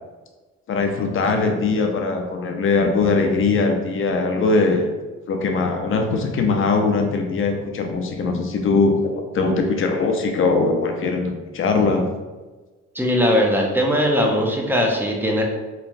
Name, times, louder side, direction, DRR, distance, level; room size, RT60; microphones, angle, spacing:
voice 1, 0.7-4.9 5.3-8.9 9.3-12.0, left 3 dB, 45° left, 4 dB, 0.5 m, -21 dB
voice 2, 12.9-15.4, equal, 5° right, 0 dB, 0.4 m, -19 dB
3.0 x 2.2 x 2.5 m, 1.2 s
cardioid pair, 90°, 30 cm